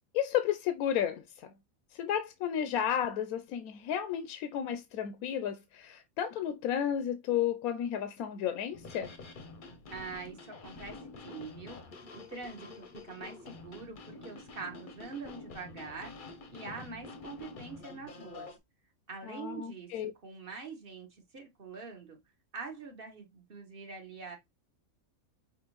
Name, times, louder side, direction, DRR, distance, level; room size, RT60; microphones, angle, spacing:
voice 1, 0.1-1.5 1.9-9.1 19.3-20.1, left 9 dB, 80° left, 1.0 m, -32 dB
sound 1, 8.7-18.6, left 3 dB, 45° left, 0.7 m, -48 dB
voice 2, 9.9-11.8 12.1-18.5 19.1-22.2 22.5-24.4, right 4 dB, 40° right, 1.2 m, -44 dB
5.9 x 2.5 x 3.0 m
omnidirectional pair, 1.5 m